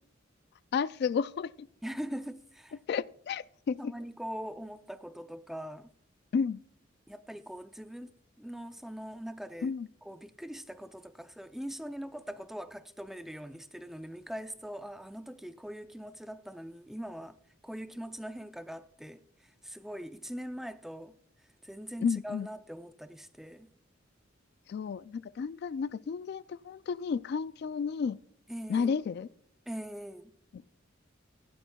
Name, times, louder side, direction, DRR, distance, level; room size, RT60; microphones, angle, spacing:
voice 1, 0.7-1.5 2.9-3.9 6.3-6.6 9.6-9.9 22.0-22.5 24.7-28.2 28.7-29.3 30.5-30.7, left 6 dB, 55° left, 0.3 m, -32 dB
voice 2, 1.8-2.8 3.8-5.9 7.1-9.8 10.0-17.4 17.6-21.2 21.6-23.7 28.5-28.9 29.7-30.3, equal, ahead, 0.5 m, -42 dB
15.5 x 11.5 x 2.3 m
head